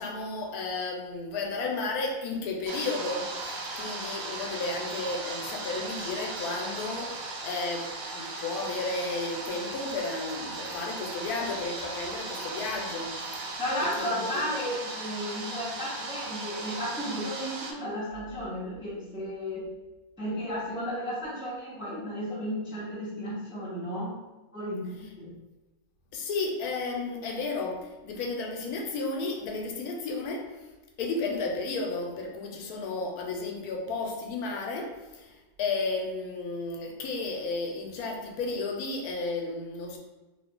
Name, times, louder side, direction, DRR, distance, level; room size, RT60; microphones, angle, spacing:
voice 1, 0.0-3.3 3.8-13.5 14.0-14.4 26.1-30.5 31.0-40.0, left 3 dB, 85° left, 1 dB, 1.1 m, -33 dB
sound 1, 2.7-17.7, right 3 dB, 75° right, 1.0 m, -37 dB
voice 2, 13.6-19.7 20.2-24.2 24.5-25.3, equal, 5° right, -7 dB, 0.5 m, -33 dB
2.7 x 2.5 x 3.6 m, 1.1 s
omnidirectional pair, 1.6 m